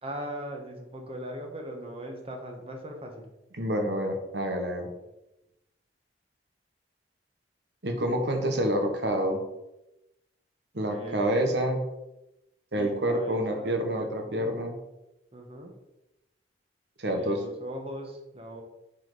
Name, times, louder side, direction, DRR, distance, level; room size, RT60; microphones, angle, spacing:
voice 1, 0.0-3.3 10.9-11.4 12.8-14.5 15.3-15.7 17.1-18.6, equal, 35° right, 3 dB, 1.5 m, -40 dB
voice 2, 3.6-4.9 7.8-9.4 10.7-11.8 12.7-14.8 17.0-17.4, right 1 dB, 75° right, 4 dB, 1.5 m, -28 dB
7.7 x 4.6 x 5.0 m, 0.93 s
head